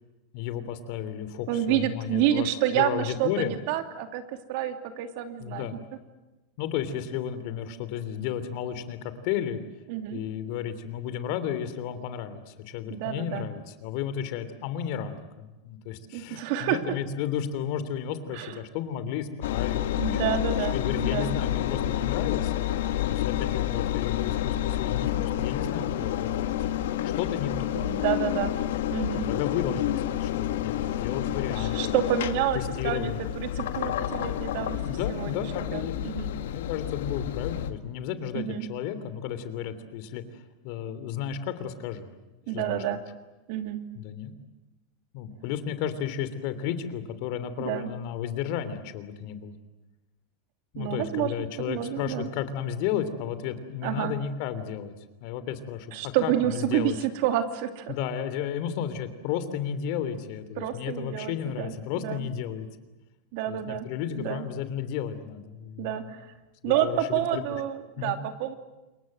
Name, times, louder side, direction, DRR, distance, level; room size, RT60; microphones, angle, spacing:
voice 1, 0.3-3.5 5.4-5.8 6.6-9.6 10.1-20.3 20.7-22.6 23.0-26.6 27.2-27.7 29.1-32.0 32.5-33.2 34.8-35.9 36.4-42.1 42.5-42.8 43.9-44.3 45.1-49.6 50.7-54.9 55.2-57.0 57.9-62.7 63.5-66.2 66.6-67.4 68.0-68.1, left 9 dB, 60° left, 12 dB, 3.1 m, -33 dB
voice 2, 1.5-5.7 9.9-10.2 12.9-13.5 16.1-16.8 18.3-18.6 20.0-21.3 27.8-28.5 28.9-29.2 31.5-36.3 38.3-38.7 42.5-43.0 43.5-43.8 47.6-47.9 50.7-51.3 51.6-52.3 53.8-54.1 55.9-57.9 60.6-62.3 63.3-63.9 64.1-64.4 65.8-66.3 66.6-68.5, right 11 dB, 60° right, 8 dB, 2.9 m, -29 dB
Engine, 19.4-37.7, left 12 dB, 85° left, 1.9 m, -29 dB
28.0 x 23.0 x 7.9 m, 1.1 s
supercardioid pair, 140°, 0 cm